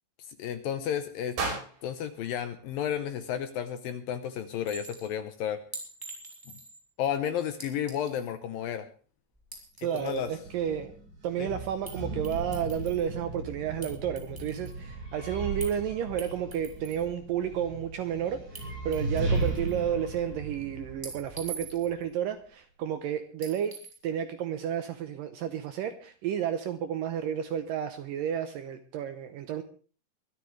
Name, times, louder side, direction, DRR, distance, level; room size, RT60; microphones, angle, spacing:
voice 1, 0.4-1.4 1.8-5.6 6.5-6.6 7.0-8.9 9.9-10.3 11.4-11.5, left 9 dB, 75° left, 10 dB, 2.3 m, -32 dB
sound 1, 1.4-3.5, right 3 dB, 90° right, 7.1 m, -37 dB
Chink clink, 4.7-5.1 5.7-6.8 7.6-8.3 9.4-10.3 11.9-12.0 12.2-13.1 13.8-14.8 15.6-15.8 16.2-17.0 18.5-18.6 18.9-19.8 21.0-22.0 23.4-24.0, right 3 dB, 5° right, 3.1 m, -44 dB
voice 2, 9.8-10.9 11.2-29.6, right 9 dB, 75° right, 9 dB, 2.1 m, -32 dB
sound 2, 9.9-22.0, right 2 dB, 55° right, 9.8 m, -37 dB
23.0 x 13.0 x 3.3 m, 0.39 s
omnidirectional pair, 4.8 m